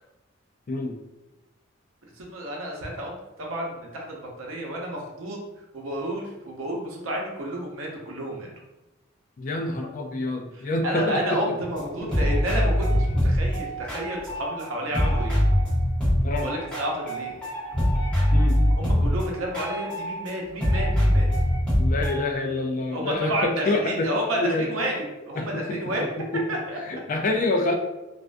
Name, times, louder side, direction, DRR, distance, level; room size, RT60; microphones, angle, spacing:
voice 1, 0.7-1.0 9.4-11.4 12.0-12.3 16.2-16.5 18.3-18.6 21.8-24.1 24.4-24.7 25.4-25.8 26.3-26.5 26.9-27.7, left 2 dB, 40° left, 3 dB, 0.3 m, -27 dB
voice 2, 2.0-5.4 5.7-8.5 10.5-15.4 16.4-17.3 18.8-21.3 22.9-26.1 26.5-26.8, equal, 90° right, -1 dB, 0.6 m, -31 dB
sound 1, 11.8-11.9 12.1-14.7 14.9-20.3 20.6-22.2, equal, 5° left, 0.9 m, -23 dB
2.4 x 2.2 x 2.4 m, 1.0 s
head